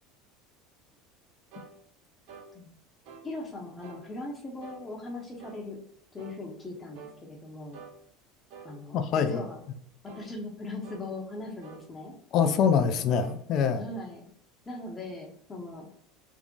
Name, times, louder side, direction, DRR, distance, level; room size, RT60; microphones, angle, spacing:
sound 1, 1.5-1.7 2.3-2.5 3.1-3.3 3.8-4.1 4.6-4.8 5.4-5.6 6.2-6.4 7.0-7.2 7.7-8.0 8.5-8.7 9.3-9.5 10.1-10.3 10.8-11.1 11.6-11.9 12.4-12.6 13.2-13.4, right 5 dB, 60° right, 0.7 m, -47 dB
voice 1, 3.2-5.8 6.1-7.8 8.6-9.6 10.0-12.1 13.7-14.3 14.7-15.9, left 2 dB, 15° left, -1 dB, 0.7 m, -39 dB
voice 2, 8.9-9.4 12.3-13.8, left 7 dB, 45° left, 8 dB, 0.4 m, -24 dB
3.5 x 2.0 x 3.7 m, 0.66 s
supercardioid pair, 135°, 0 cm